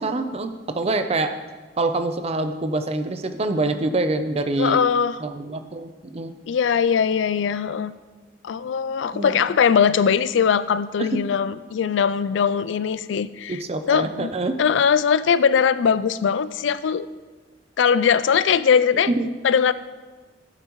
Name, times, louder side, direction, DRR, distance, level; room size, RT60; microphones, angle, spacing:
voice 1, 0.0-1.3 1.8-4.8 5.2-6.3 9.1-9.3 11.0-11.1 13.5-14.6 19.1-19.3, right 2 dB, 35° right, 8 dB, 0.6 m, -25 dB
voice 2, 4.6-5.2 6.5-7.9 8.4-13.6 13.9-14.3 14.6-17.1 17.8-19.1 19.4-19.7, left 7 dB, 80° left, 15 dB, 0.4 m, -20 dB
12.0 x 8.8 x 3.1 m, 1.3 s
head